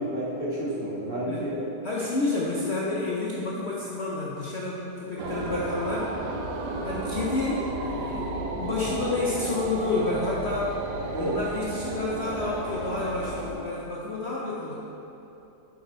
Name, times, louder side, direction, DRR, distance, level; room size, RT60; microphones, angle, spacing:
voice 1, 0.0-1.7 11.1-11.4, right 1 dB, 35° right, -7 dB, 1.6 m, -30 dB
voice 2, 1.8-6.1 6.8-10.8 11.2-14.7, left 3 dB, 50° left, -5 dB, 0.8 m, -30 dB
sound 1, 5.2-13.5, right 2 dB, 75° right, 1.3 m, -33 dB
8.2 x 6.1 x 4.4 m, 2.9 s
omnidirectional pair, 1.8 m